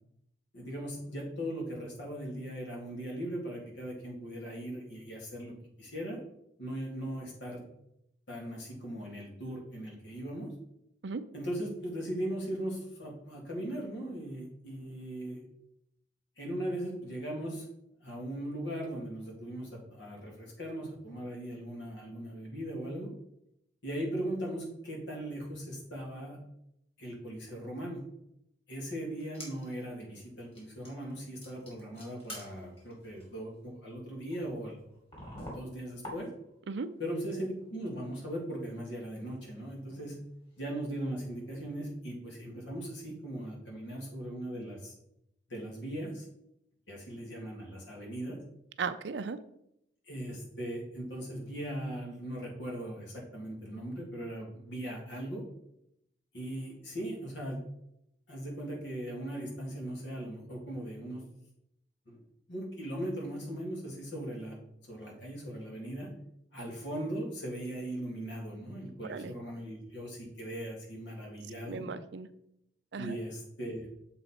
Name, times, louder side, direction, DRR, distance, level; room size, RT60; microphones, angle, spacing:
voice 1, 0.5-6.2 6.6-7.6 8.3-10.5 11.3-15.4 16.4-17.7 18.0-23.1 23.8-26.4 27.0-28.0 28.7-34.8 35.4-36.3 37.0-40.2 40.6-44.9 45.5-46.3 46.9-48.4 50.1-55.4 56.3-57.6 58.3-61.2 62.1-62.2 62.5-64.6 64.9-66.1 66.5-71.9 73.0-73.9, right 1 dB, 75° left, -2 dB, 2.2 m, -39 dB
sound 1, 29.2-29.8 30.2-30.3 30.5-31.1 31.4-36.7 37.0-37.7 38.0-38.1 38.6-40.8 41.2-41.3, equal, 30° left, 2.4 m, -49 dB
voice 2, 48.8-49.4 69.0-69.3 71.7-72.3 72.9-73.2, right 5 dB, 70° right, 12 dB, 0.5 m, -36 dB
7.0 x 4.1 x 4.2 m, 0.78 s
head